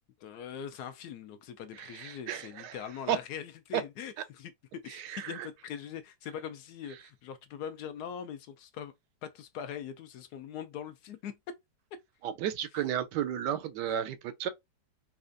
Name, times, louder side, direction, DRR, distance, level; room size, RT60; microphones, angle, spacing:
voice 1, 0.2-8.9 9.2-11.4 11.9-12.0, left 8 dB, 75° left, 1.1 m, -42 dB
voice 2, 1.7-2.8 3.1-3.2 3.7-3.8 4.9-5.5 12.2-14.5, right 10 dB, 85° right, 1.2 m, -33 dB
4.2 x 2.4 x 2.5 m
omnidirectional pair, 1.8 m